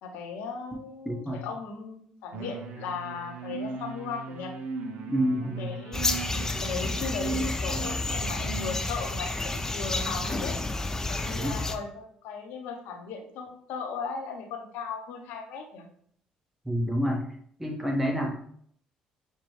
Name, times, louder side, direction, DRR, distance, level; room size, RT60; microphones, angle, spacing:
voice 1, 0.0-4.5 5.6-6.1 6.6-10.6 11.1-15.9, left 5 dB, 75° left, 3 dB, 0.8 m, -37 dB
voice 2, 1.0-1.4 5.1-5.7 11.4-11.6 16.6-17.2 17.6-18.4, equal, 10° right, 0 dB, 1.1 m, -28 dB
sound 1, 2.3-8.8, right 3 dB, 65° right, 0.6 m, -38 dB
sound 2, 5.9-11.8, left 2 dB, 15° left, 0.5 m, -30 dB
6.4 x 2.2 x 3.1 m, 0.63 s
hypercardioid pair, 60°, 3 cm